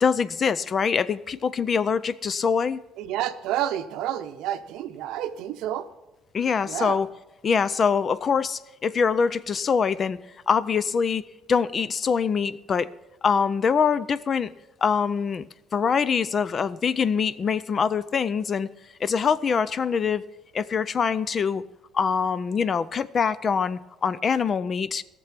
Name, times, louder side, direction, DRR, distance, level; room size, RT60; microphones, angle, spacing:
voice 1, 0.0-2.8 6.3-7.1 7.4-10.2 10.5-11.2 11.5-12.9 13.2-14.5 14.8-15.4 15.7-18.7 19.0-20.2 20.5-21.6 21.9-25.0, left 6 dB, 35° left, 0.4 m, -24 dB
voice 2, 3.0-5.9 6.7-7.0, right 11 dB, 80° right, 0.7 m, -29 dB
17.0 x 6.7 x 5.9 m
cardioid pair, 120°, 0 cm